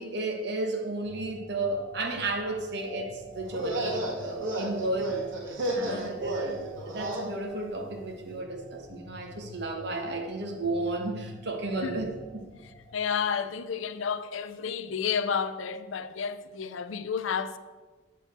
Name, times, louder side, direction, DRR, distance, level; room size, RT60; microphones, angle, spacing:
voice 1, 0.0-5.1 5.7-6.6 6.9-12.1 12.3-12.4, right 2 dB, 60° right, 1.3 m, -33 dB
sound 1, 1.1-12.9, left 1 dB, 25° left, 0.8 m, -48 dB
sound 2, 3.4-7.3, right 1 dB, 85° right, 2.0 m, -32 dB
voice 2, 5.7-6.1 11.8-12.0 12.6-17.6, left 6 dB, 90° left, 0.5 m, -31 dB
8.2 x 4.8 x 6.9 m
head